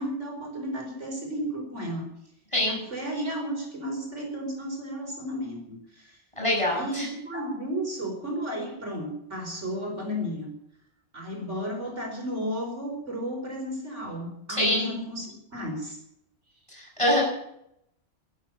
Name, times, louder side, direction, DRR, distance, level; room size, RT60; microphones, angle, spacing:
voice 1, 0.0-2.1 2.7-6.2 6.7-10.5 11.1-16.0, equal, 75° right, 1 dB, 5.0 m, -33 dB
voice 2, 6.4-7.1 14.5-14.9 16.7-17.2, left 1 dB, 25° left, -2 dB, 6.5 m, -25 dB
13.0 x 11.0 x 8.6 m, 0.78 s
omnidirectional pair, 1.3 m